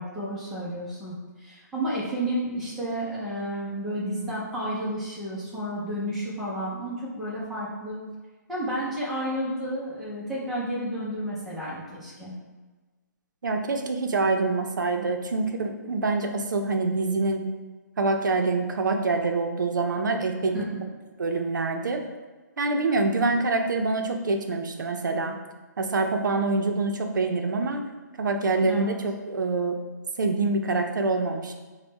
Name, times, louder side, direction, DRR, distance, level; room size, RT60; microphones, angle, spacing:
voice 1, 0.0-8.0 8.5-12.3 20.1-20.8 28.6-28.9, right 1 dB, ahead, -9 dB, 0.5 m, -31 dB
voice 2, 13.4-17.4 18.0-20.6 21.2-22.0 22.6-25.4 25.8-27.8 28.2-29.8 30.2-31.5, right 3 dB, 80° right, 4 dB, 0.5 m, -25 dB
3.5 x 2.2 x 3.9 m, 1.3 s
hypercardioid pair, 170°, 10 cm